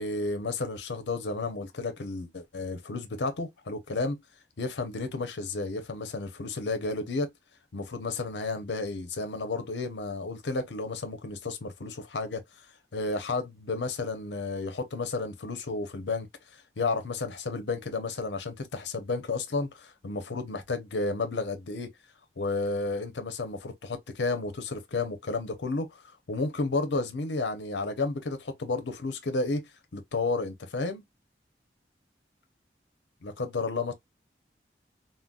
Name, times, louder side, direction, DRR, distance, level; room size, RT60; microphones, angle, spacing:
voice 1, 0.0-4.2 4.6-7.3 7.7-12.4 12.9-16.3 16.8-21.9 22.4-26.0 26.3-31.0 33.2-33.9, left 3 dB, 85° left, 0.7 m, -32 dB
3.8 x 2.0 x 2.3 m
head